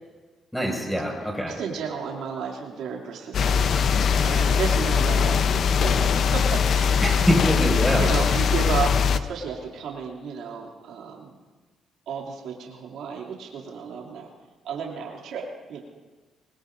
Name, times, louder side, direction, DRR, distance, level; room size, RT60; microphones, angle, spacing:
voice 1, 0.5-1.5 7.0-8.1, equal, ahead, 0 dB, 5.8 m, -24 dB
voice 2, 1.5-3.6 4.1-7.3 8.0-11.3 12.1-14.3 14.6-15.8, right 6 dB, 80° right, -2 dB, 2.7 m, -33 dB
sound 1, 3.3-9.2, left 6 dB, 60° left, 0.7 m, -21 dB
24.5 x 21.5 x 2.6 m, 1.3 s
cardioid pair, 90°, 0 cm